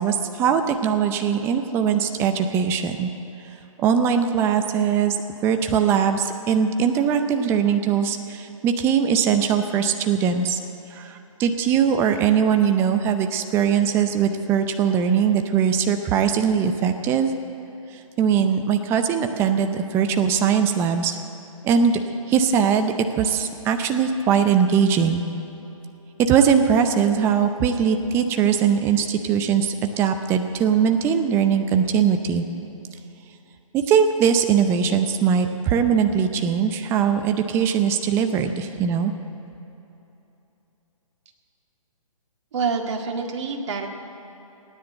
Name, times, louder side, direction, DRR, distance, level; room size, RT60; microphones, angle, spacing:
voice 1, 0.0-3.1 3.8-5.2 5.4-10.6 10.9-17.3 18.2-21.2 21.6-22.0 22.3-25.2 26.2-32.4 33.7-39.1, right 7 dB, 15° right, 7 dB, 0.6 m, -21 dB
voice 2, 42.5-43.9, right 5 dB, 55° right, 2 dB, 2.0 m, -26 dB
17.5 x 9.8 x 7.9 m, 3.0 s
hypercardioid pair, 145°, 18 cm